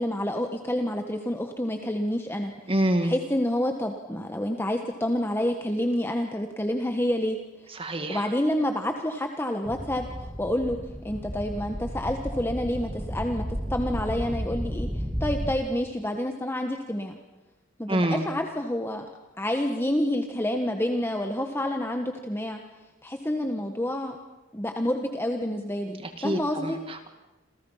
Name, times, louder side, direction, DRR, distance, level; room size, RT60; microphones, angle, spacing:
voice 1, 0.0-2.7 3.0-7.4 7.7-7.8 8.1-10.8 11.0-14.9 15.2-17.2 17.8-19.0 19.4-22.6 23.0-24.2 24.5-26.8, left 1 dB, 10° left, 4 dB, 1.5 m, -28 dB
voice 2, 2.7-3.1 7.7-8.2 17.9-18.2 26.0-27.1, right 1 dB, 30° right, 6 dB, 2.2 m, -26 dB
sound 1, 9.7-15.6, equal, 5° right, 1.9 m, -33 dB
28.5 x 28.0 x 5.8 m, 1.1 s
head